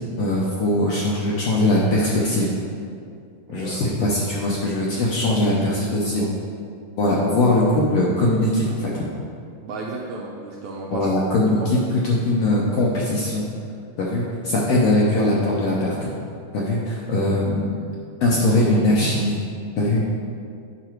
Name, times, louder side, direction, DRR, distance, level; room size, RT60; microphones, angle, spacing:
voice 1, 0.2-2.5 3.5-6.2 7.0-9.0 10.9-11.8 12.0-13.4 14.0-16.1 16.5-17.8 18.2-19.4 19.8-20.0, left 1 dB, 70° left, -4 dB, 1.6 m, -21 dB
voice 2, 3.5-3.8 5.3-6.3 9.6-11.1 11.6-11.8, right 3 dB, 80° right, -2 dB, 1.7 m, -34 dB
9.1 x 6.0 x 4.6 m, 2.3 s
omnidirectional pair, 3.9 m